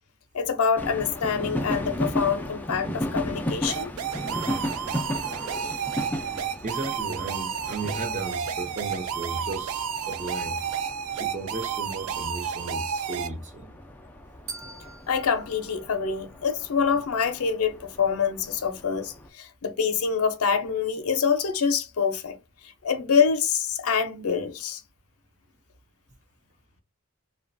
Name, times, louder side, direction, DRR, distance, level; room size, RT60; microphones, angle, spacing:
voice 1, 0.3-3.9 14.6-22.4 22.8-24.8, left 6 dB, 75° left, 0.5 m, -26 dB
sound 1, 0.8-19.3, left 1 dB, 10° left, 0.3 m, -36 dB
sound 2, 3.7-13.3, right 7 dB, 80° right, 0.4 m, -31 dB
voice 2, 6.6-10.6 11.1-13.8, right 2 dB, 35° right, 0.6 m, -35 dB
sound 3, 14.5-16.7, right 3 dB, 65° right, 0.9 m, -44 dB
2.9 x 2.2 x 2.5 m
head